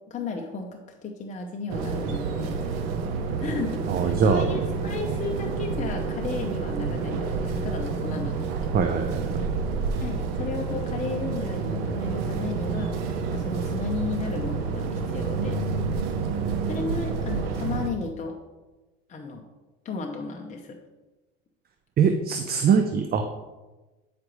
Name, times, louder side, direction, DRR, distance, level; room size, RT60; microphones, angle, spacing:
voice 1, 0.1-2.9 3.4-8.7 10.0-12.9 13.3-15.6 16.7-18.4 19.1-19.4 19.8-20.8, left 4 dB, 25° left, 2 dB, 0.8 m, -34 dB
sound 1, 1.7-17.9, right 4 dB, 85° right, 0.9 m, -29 dB
voice 2, 3.9-4.5 8.7-9.4 22.0-23.2, right 6 dB, 35° right, 6 dB, 0.6 m, -22 dB
9.4 x 5.0 x 3.1 m, 1.1 s
supercardioid pair, 100°, 29 cm